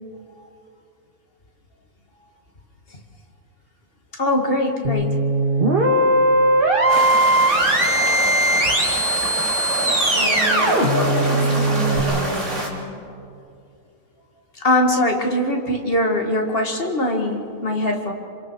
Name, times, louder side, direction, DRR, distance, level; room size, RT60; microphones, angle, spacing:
voice 1, 4.2-5.1 14.6-18.1, left 1 dB, 40° left, 2 dB, 2.4 m, -21 dB
sound 1, 4.8-12.0, right 1 dB, 35° right, 2.5 m, -19 dB
sound 2, 6.9-12.7, right 1 dB, 55° right, 3.4 m, -27 dB
voice 2, 10.1-12.9, left 1 dB, 10° left, -5 dB, 7.5 m, -28 dB
27.0 x 26.5 x 4.8 m, 2.6 s
omnidirectional pair, 1.5 m